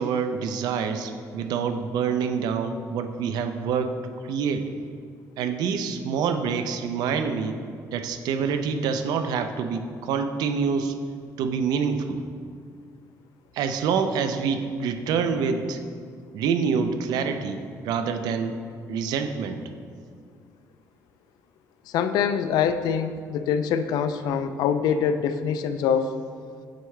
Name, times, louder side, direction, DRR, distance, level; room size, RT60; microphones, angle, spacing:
voice 1, 0.0-3.9 4.3-4.7 5.4-7.6 7.9-10.9 11.4-12.2 13.5-15.8 16.3-18.5 18.9-19.6, right 6 dB, 80° right, 8 dB, 0.4 m, -26 dB
voice 2, 21.9-26.2, left 7 dB, 80° left, 10 dB, 0.3 m, -24 dB
7.8 x 4.7 x 3.2 m, 2.2 s
cardioid pair, 160°, 7 cm